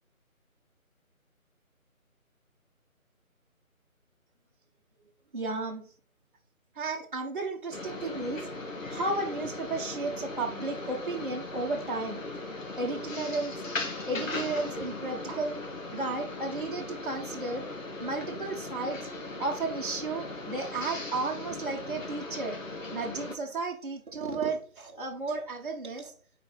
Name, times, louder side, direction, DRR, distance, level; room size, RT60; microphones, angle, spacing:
voice 1, 5.3-5.9 6.8-8.5 8.9-12.2 12.7-13.5 14.1-15.6 15.9-17.6 18.0-19.1 19.4-22.6 22.9-26.1, right 3 dB, 35° right, -1 dB, 1.0 m, -33 dB
sound 1, 7.7-23.4, left 2 dB, 60° left, 1.5 m, -38 dB
4.5 x 4.2 x 5.3 m, 0.44 s
figure-of-eight pair, 165°, 43 cm